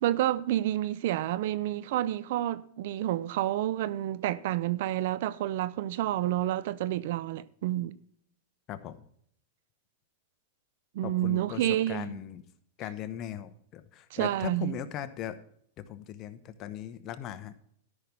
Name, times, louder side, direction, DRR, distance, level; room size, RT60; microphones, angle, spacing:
voice 1, 0.0-8.0 10.9-12.1 14.1-14.8, right 13 dB, 65° right, 0.6 m, -29 dB
voice 2, 11.0-12.4 12.8-15.4 15.8-17.5, left 11 dB, 40° left, 1.0 m, -39 dB
13.0 x 6.1 x 5.3 m
hypercardioid pair, 120°, 0 cm